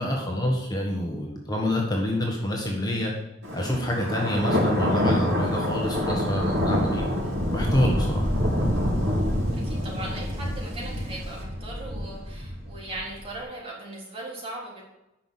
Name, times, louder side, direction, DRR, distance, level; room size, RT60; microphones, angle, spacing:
voice 1, 0.0-3.1 3.5-7.0 7.5-8.3, left 1 dB, 20° left, 0 dB, 1.4 m, -27 dB
Thunder, 3.4-13.3, equal, 60° right, 3.8 m, -27 dB
voice 2, 9.6-14.8, right 1 dB, 30° right, -4 dB, 3.9 m, -38 dB
10.0 x 6.1 x 7.4 m, 0.91 s
head